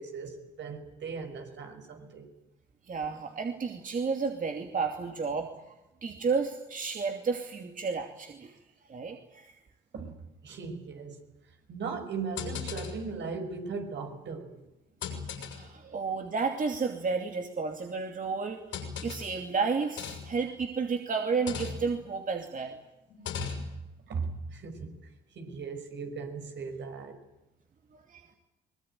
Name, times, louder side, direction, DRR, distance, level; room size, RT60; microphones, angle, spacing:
voice 1, 0.0-2.3 9.9-11.2 11.7-14.6 15.8-16.0 23.4-23.6 24.1-27.2, right 5 dB, 65° right, 5.9 m, -38 dB
voice 2, 2.9-5.5 6.0-8.5 8.9-9.5 15.5-18.6 19.0-22.8 27.9-28.3, right 5 dB, 40° right, 2.7 m, -32 dB
sound 1, 12.4-13.1 14.0-14.2 15.0-15.8 16.7-16.8 18.7-19.4 20.0-20.4 21.3-22.1 23.1-23.8, left 6 dB, 75° left, 6.8 m, -38 dB
23.5 x 20.5 x 9.2 m
cardioid pair, 90°, 20 cm